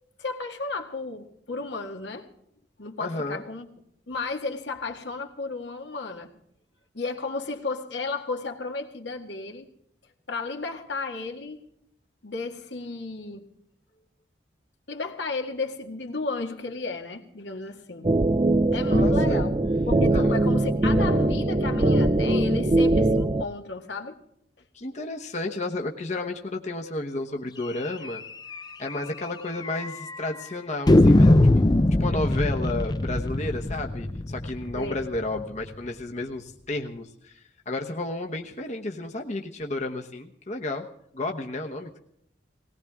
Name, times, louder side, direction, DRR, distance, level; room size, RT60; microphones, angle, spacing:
voice 1, 0.2-2.3 2.8-3.7 4.1-6.3 6.9-9.7 10.3-11.6 12.2-13.5 14.9-18.1 18.7-19.5 19.9-24.2 34.8-34.9, left 3 dB, 85° left, 1.9 m, -33 dB
voice 2, 3.0-3.4 18.9-19.5 20.1-20.3 24.7-28.2 28.8-31.4 32.0-40.8 41.1-42.0, left 2 dB, 40° left, 1.1 m, -32 dB
sound 1, 18.0-23.4, right 2 dB, 30° right, 0.6 m, -21 dB
sound 2, 28.0-28.2 28.5-28.6 28.9-29.0 29.6-30.2 30.9-35.7, left 1 dB, 25° left, 0.5 m, -21 dB
19.0 x 19.0 x 3.6 m
head